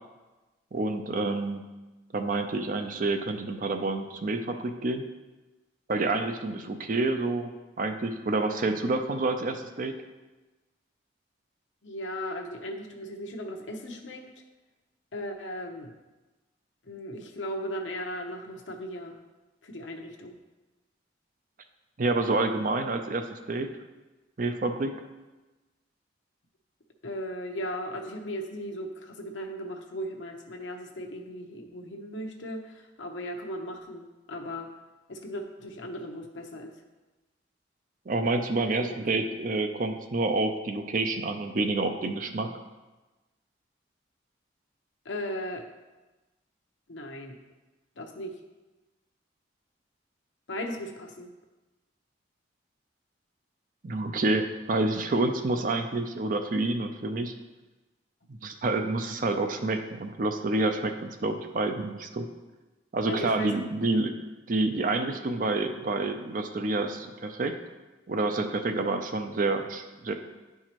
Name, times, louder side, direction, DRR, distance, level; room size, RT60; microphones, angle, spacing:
voice 1, 0.7-1.6 2.1-5.0 5.9-7.5 7.8-10.0 22.0-23.7 24.4-24.9 38.1-42.5 53.8-57.3 58.3-62.3 62.9-64.1 64.5-67.5 68.1-70.1, right 2 dB, 45° right, 6 dB, 0.5 m, -28 dB
voice 2, 11.8-14.2 15.1-15.9 16.8-19.2 19.6-20.4 27.0-34.7 35.1-36.7 38.8-39.0 45.0-45.7 46.9-47.4 48.0-48.3 50.5-51.3 63.1-63.9, equal, 80° left, 3 dB, 0.8 m, -37 dB
10.5 x 4.7 x 3.0 m, 1.1 s
head